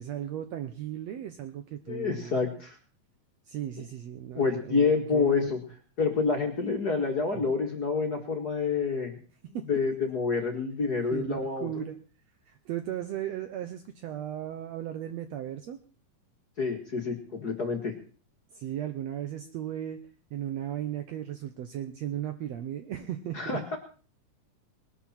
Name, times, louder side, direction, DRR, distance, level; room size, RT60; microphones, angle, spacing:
voice 1, 0.0-2.3 3.5-5.5 7.3-7.4 9.5-9.7 11.1-12.0 12.5-15.8 18.5-20.0 20.3-23.8, right 11 dB, 70° right, 8 dB, 1.7 m, -36 dB
voice 2, 1.9-2.8 4.3-5.6 6.0-9.2 9.7-11.9 16.6-17.9 23.3-23.8, left 5 dB, 40° left, 2 dB, 1.7 m, -28 dB
20.0 x 12.0 x 4.3 m, 0.39 s
omnidirectional pair, 3.8 m